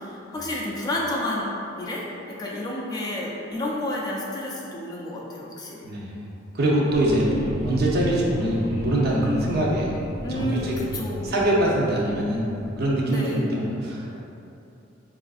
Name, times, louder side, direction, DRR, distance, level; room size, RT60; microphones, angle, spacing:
voice 1, 0.0-5.8 10.2-11.3 13.1-13.4, left 1 dB, 20° left, -4 dB, 0.3 m, -30 dB
voice 2, 6.5-10.0 10.3-10.7 11.2-12.5 12.8-14.2, right 1 dB, 55° right, -4 dB, 0.6 m, -23 dB
sound 1, 6.9-13.1, left 1 dB, 90° right, 0.8 m, -35 dB
4.3 x 2.4 x 2.4 m, 2.7 s
head